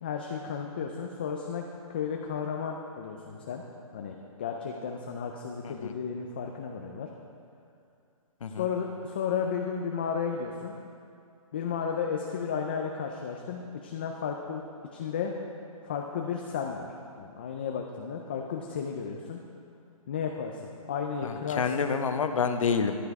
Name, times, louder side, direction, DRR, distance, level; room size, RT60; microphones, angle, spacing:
voice 1, 0.0-1.6 1.9-3.6 3.9-7.1 8.6-10.7 11.5-14.6 14.9-15.3 15.8-16.9 17.2-19.4 20.1-20.6 20.9-21.9, left 6 dB, 15° left, 1 dB, 0.4 m, -33 dB
voice 2, 21.2-23.0, left 6 dB, 65° left, 7 dB, 1.0 m, -28 dB
13.0 x 10.0 x 4.7 m, 2.5 s
hypercardioid pair, 170°, 18 cm